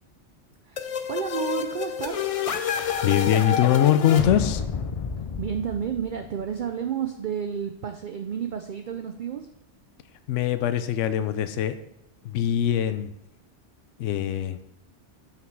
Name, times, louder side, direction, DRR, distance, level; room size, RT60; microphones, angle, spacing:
voice 1, 0.6-2.3 5.4-9.5, right 8 dB, 60° right, 6 dB, 0.5 m, -31 dB
sound 1, 0.8-6.4, left 7 dB, 60° left, 0.3 m, -29 dB
voice 2, 2.7-4.6 10.3-11.8 12.2-13.1 14.0-14.6, left 10 dB, 85° left, 10 dB, 0.9 m, -23 dB
5.9 x 5.8 x 4.6 m, 0.78 s
omnidirectional pair, 1.2 m